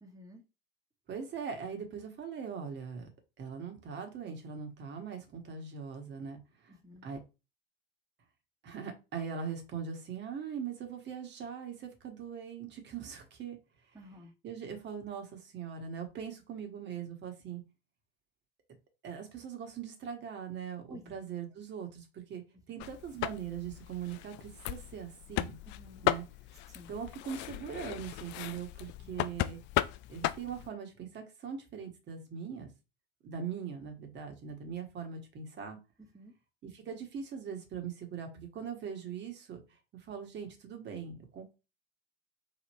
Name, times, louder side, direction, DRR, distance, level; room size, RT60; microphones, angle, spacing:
voice 1, 0.0-0.4 6.7-7.1 13.9-14.3 20.9-21.1 25.6-26.1 26.7-26.9 29.0-29.1 36.0-36.3, equal, 10° right, 1.3 m, -52 dB
voice 2, 1.1-3.1 3.4-6.7 7.0-7.2 8.6-13.6 13.9-14.0 14.4-17.6 19.0-22.4 22.7-25.6 26.0-26.2 26.9-29.6 30.1-32.7 33.2-35.8 36.6-41.5, right 7 dB, 35° right, 1.5 m, -41 dB
sound 1, 22.8-30.7, left 15 dB, 40° left, 0.4 m, -36 dB
3.5 x 3.2 x 4.2 m
figure-of-eight pair, 70°, 29 cm